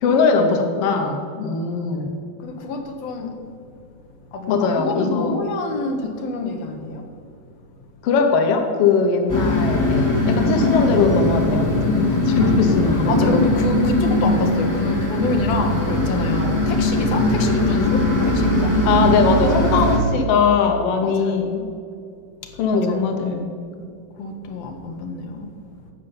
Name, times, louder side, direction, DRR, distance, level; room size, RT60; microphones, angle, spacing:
voice 1, 0.0-2.1 4.5-5.4 8.0-13.3 17.3-17.5 18.8-21.6 22.6-23.5, left 5 dB, 85° left, 4 dB, 1.3 m, -20 dB
voice 2, 2.4-3.3 4.3-7.0 12.6-18.7 21.0-21.3 22.7-23.4 23.8-23.9 24.2-25.5, left 3 dB, 70° left, 4 dB, 1.6 m, -27 dB
sound 1, 9.3-20.0, left 1 dB, 10° left, 1.1 m, -20 dB
13.5 x 5.5 x 8.9 m, 2.3 s
omnidirectional pair, 4.3 m